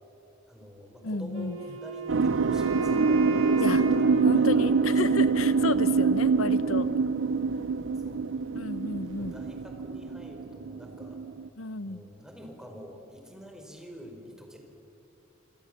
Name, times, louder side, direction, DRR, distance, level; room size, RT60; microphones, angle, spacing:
voice 1, 0.5-5.4 7.9-8.4 9.2-11.2 11.8-14.6, equal, 5° right, 3 dB, 4.3 m, -47 dB
voice 2, 1.0-1.6 3.6-3.8 4.2-6.9 8.5-9.3 11.6-12.0, left 3 dB, 90° left, 14 dB, 0.9 m, -32 dB
Wind instrument woodwind instrument, 1.3-5.4, equal, 85° right, 3.3 m, -35 dB
sound 1, 2.1-11.5, right 5 dB, 65° right, 0.6 m, -25 dB
27.0 x 27.0 x 7.6 m, 2.8 s
head